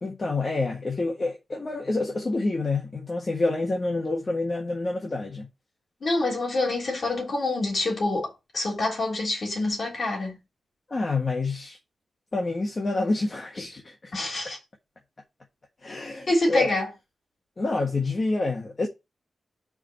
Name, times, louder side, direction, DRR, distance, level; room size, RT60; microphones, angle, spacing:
voice 1, 0.0-5.5 10.9-11.8 12.3-14.1 15.8-16.7 17.6-18.9, left 3 dB, 30° left, 1.4 m, -28 dB
voice 2, 6.0-10.4 14.1-14.6 16.3-16.9, left 2 dB, 45° left, 3.3 m, -26 dB
4.9 x 4.7 x 5.8 m
wide cardioid pair, 165°, 0 cm